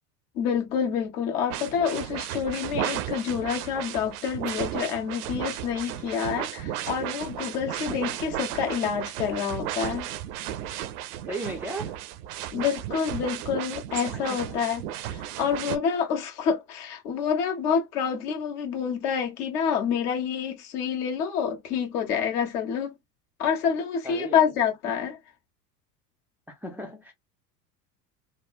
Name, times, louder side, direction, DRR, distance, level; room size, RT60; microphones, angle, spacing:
voice 1, 0.3-10.1 12.5-22.9 23.4-25.2, left 7 dB, 65° left, 1.5 m, -28 dB
sound 1, 1.5-15.8, right 12 dB, 65° right, 0.6 m, -34 dB
voice 2, 11.3-12.0 14.3-14.6 24.0-24.5 26.5-27.1, right 1 dB, 5° right, 0.4 m, -36 dB
3.4 x 2.2 x 2.4 m
hypercardioid pair, 85°, 50 cm